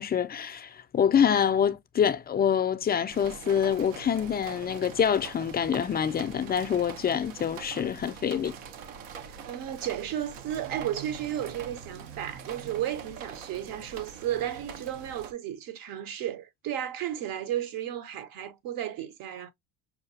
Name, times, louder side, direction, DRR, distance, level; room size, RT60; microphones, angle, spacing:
voice 1, 0.0-8.5, left 8 dB, 25° left, 0.4 m, -26 dB
sound 1, 3.1-15.3, right 7 dB, 85° right, 0.7 m, -43 dB
voice 2, 9.3-19.5, right 11 dB, 60° right, 0.8 m, -33 dB
5.7 x 2.3 x 2.6 m
supercardioid pair, 85°, 39 cm